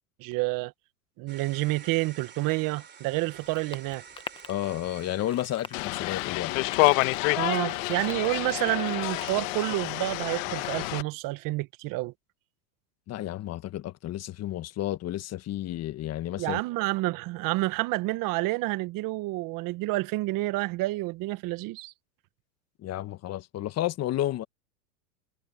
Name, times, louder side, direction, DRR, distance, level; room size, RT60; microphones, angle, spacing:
voice 1, 0.2-0.7 1.2-4.0 7.4-12.1 16.4-21.9, right 21 dB, 45° right, 1.6 m, -29 dB
sound 1, 1.3-6.8, right 6 dB, 20° right, 3.3 m, -50 dB
sound 2, 3.3-9.6, left 4 dB, 10° left, 1.1 m, -46 dB
voice 2, 4.5-6.5 13.1-16.6 22.8-24.4, left 13 dB, 35° left, 1.3 m, -31 dB
sound 3, 5.7-11.0, left 25 dB, 55° left, 1.4 m, -28 dB
hypercardioid pair, 105°, 46 cm